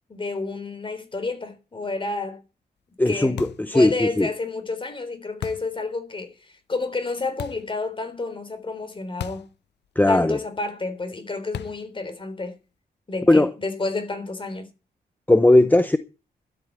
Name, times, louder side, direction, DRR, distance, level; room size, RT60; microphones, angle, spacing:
voice 1, 0.1-2.4 3.1-3.4 3.7-6.3 6.7-9.5 10.1-12.6 13.1-14.7, left 3 dB, 30° left, 3.8 m, -30 dB
voice 2, 3.0-4.3 10.0-10.4 13.3-13.5 15.3-16.0, left 1 dB, 10° left, 0.8 m, -17 dB
sound 1, 3.4-3.8 5.4-5.8 7.4-7.7 9.2-9.6 9.8-9.9 11.5-11.9, left 10 dB, 85° left, 0.8 m, -35 dB
12.5 x 8.9 x 8.1 m
wide cardioid pair, 125°, 17 cm